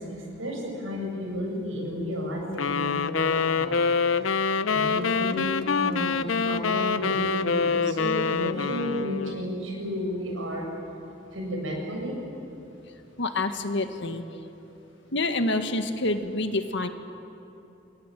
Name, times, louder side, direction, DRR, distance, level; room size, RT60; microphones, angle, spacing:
voice 1, 0.0-3.8 4.1-4.3 4.7-5.5 5.8-10.7 11.3-12.2, equal, 90° right, 0 dB, 7.9 m, -32 dB
sound 1, 2.6-9.5, left 5 dB, 85° left, 0.8 m, -26 dB
voice 2, 13.2-14.2 15.1-16.9, left 2 dB, 65° left, 8 dB, 1.8 m, -27 dB
28.0 x 23.0 x 9.3 m, 2.9 s
head